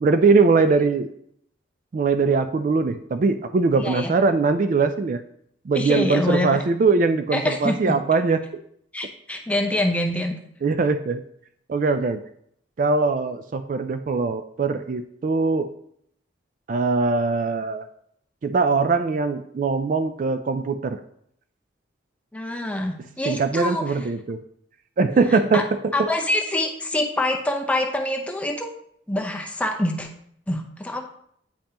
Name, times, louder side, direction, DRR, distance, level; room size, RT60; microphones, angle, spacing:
voice 1, 0.0-1.1 1.9-5.2 5.6-8.4 10.6-11.2 11.7-12.2 12.8-15.7 16.7-17.9 18.4-21.0 23.0-24.4 25.0-26.1, right 4 dB, 45° right, 9 dB, 0.3 m, -21 dB
voice 2, 3.8-4.1 5.7-6.6 7.3-7.9 8.9-10.3 22.3-24.0 25.5-25.6 25.9-28.7 29.1-30.1 30.5-31.0, left 1 dB, 5° left, 2 dB, 0.7 m, -25 dB
8.7 x 5.3 x 2.9 m, 0.69 s
head